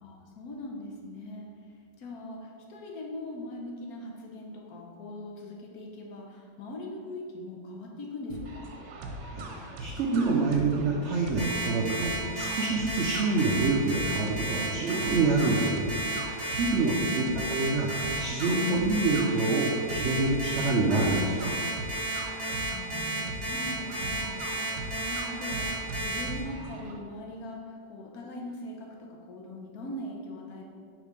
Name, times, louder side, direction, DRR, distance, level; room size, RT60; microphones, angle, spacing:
voice 1, 0.0-8.7 17.0-17.6 22.5-30.6, left 1 dB, 65° left, -1 dB, 1.1 m, -41 dB
sound 1, 8.3-26.9, right 1 dB, 70° right, 1.2 m, -40 dB
voice 2, 9.8-17.2 17.5-21.5, right 3 dB, 90° right, -1 dB, 0.6 m, -27 dB
Alarm, 11.4-26.2, right 1 dB, 40° right, 1.5 m, -32 dB
5.0 x 3.7 x 5.1 m, 2.2 s
omnidirectional pair, 1.9 m